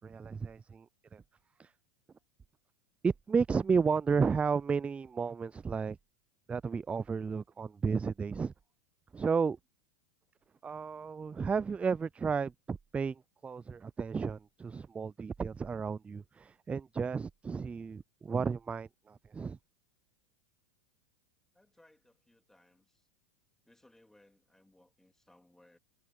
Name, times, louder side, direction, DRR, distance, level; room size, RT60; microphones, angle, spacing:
voice 1, 0.0-0.9 1.1-1.2 1.6-1.7 3.0-6.0 6.5-8.5 9.1-9.6 10.6-19.6, right 5 dB, 15° right, 0.3 m, -33 dB
voice 2, 21.5-23.1 23.6-25.8, left 1 dB, 5° left, 3.1 m, -64 dB
hypercardioid pair, 105°, 8 cm